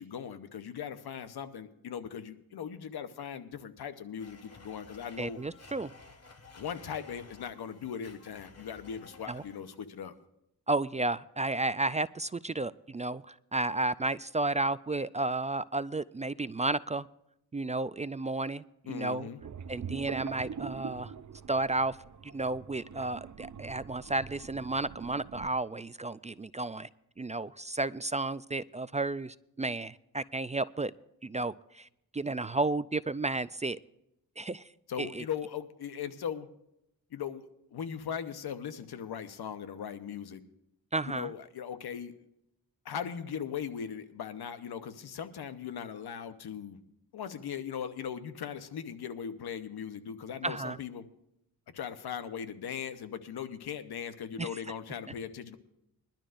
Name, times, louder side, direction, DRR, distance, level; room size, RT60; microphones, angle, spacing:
voice 1, 0.0-5.4 6.5-10.1 18.9-19.4 34.9-36.5 37.1-37.5 37.7-40.4 41.1-42.1 42.8-46.8 47.1-51.0 51.7-55.6, left 8 dB, 85° left, 10 dB, 1.0 m, -39 dB
Domestic sounds home sounds, 4.2-9.9, left 3 dB, 40° left, 1.7 m, -54 dB
voice 2, 5.2-5.9 9.3-9.4 10.7-17.1 17.5-19.3 19.7-21.1 21.5-22.0 22.2-26.9 27.2-30.9 31.2-33.8 34.4-34.7 35.0-35.2 40.9-41.3 50.4-50.8 54.4-54.6, right 2 dB, 20° right, 16 dB, 0.3 m, -32 dB
sound 1, 19.4-25.5, right 7 dB, 50° right, 0.7 m, -43 dB
21.5 x 12.0 x 2.6 m, 0.81 s
cardioid pair, 55°, 38 cm